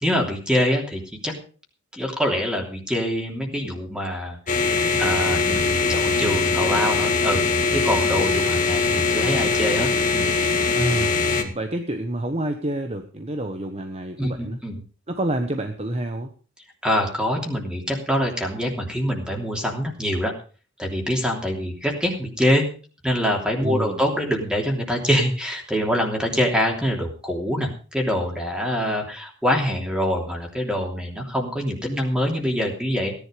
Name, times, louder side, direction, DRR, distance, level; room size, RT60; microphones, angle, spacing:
voice 1, 0.0-1.3 1.9-4.4 5.0-7.4 7.7-10.3 11.3-11.5 14.2-14.8 16.8-20.3 20.8-22.7 23.0-33.1, equal, 5° right, 0 dB, 3.1 m, -24 dB
sound 1, 4.5-11.4, left 4 dB, 40° left, 1.9 m, -21 dB
voice 2, 10.7-11.2 11.5-14.6 15.1-16.3 23.6-24.0, right 1 dB, 30° right, 6 dB, 1.2 m, -28 dB
17.0 x 11.0 x 5.2 m, 0.39 s
head